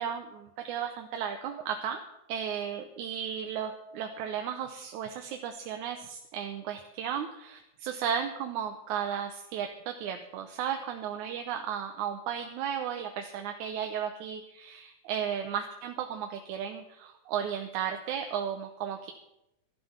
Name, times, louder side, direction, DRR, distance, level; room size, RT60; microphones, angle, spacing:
voice 1, 0.0-2.0 2.3-19.1, right 8 dB, 85° right, 5 dB, 2.3 m, -34 dB
14.0 x 11.0 x 5.8 m, 0.84 s
omnidirectional pair, 3.4 m